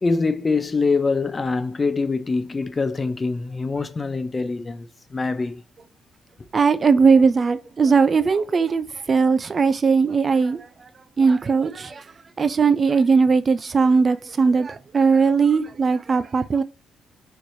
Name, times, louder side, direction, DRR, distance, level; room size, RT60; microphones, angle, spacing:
voice 1, 0.0-5.6, left 4 dB, 30° left, 0.5 m, -24 dB
voice 2, 6.5-10.6 11.2-12.0 12.4-16.6, right 5 dB, 40° right, 0.4 m, -19 dB
4.5 x 3.2 x 2.6 m
cardioid pair, 90°, 0 cm